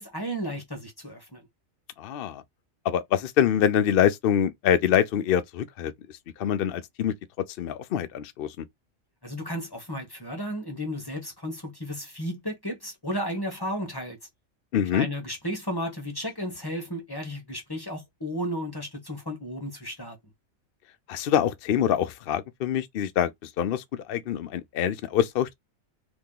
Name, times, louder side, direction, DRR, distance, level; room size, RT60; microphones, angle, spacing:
voice 1, 0.0-1.5 9.2-14.2 14.9-20.2, equal, 20° left, 0.9 m, -33 dB
voice 2, 2.0-2.4 2.8-5.9 6.4-7.1 7.6-8.6 14.7-15.1 21.1-25.5, left 9 dB, 65° left, 0.6 m, -25 dB
2.9 x 2.8 x 3.7 m
omnidirectional pair, 1.4 m